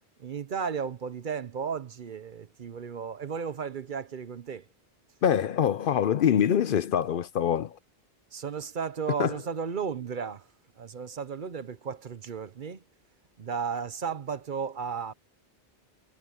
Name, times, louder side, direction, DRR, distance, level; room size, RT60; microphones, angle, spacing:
voice 1, 0.2-4.7 8.3-10.5 10.8-12.8 13.4-15.1, right 6 dB, 55° right, 0.9 m, -34 dB
voice 2, 5.2-7.8 9.2-9.3, left 9 dB, 60° left, 0.7 m, -24 dB
omnidirectional pair, 1.1 m